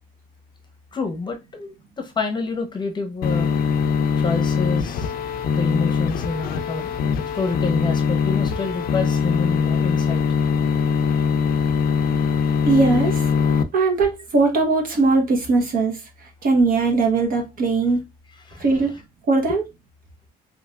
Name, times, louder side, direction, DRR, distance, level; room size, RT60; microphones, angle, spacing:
voice 1, 0.9-3.5 4.2-5.1 5.5-6.9 7.3-10.2 18.5-18.7, left 4 dB, 25° left, 0.8 m, -28 dB
sound 1, 3.2-13.6, left 6 dB, 60° left, 0.4 m, -22 dB
voice 2, 12.6-13.2 13.7-16.0 16.4-18.0 18.6-18.9 19.3-19.6, right 3 dB, 55° right, 1.1 m, -19 dB
3.3 x 3.0 x 2.4 m
cardioid pair, 110°, 17 cm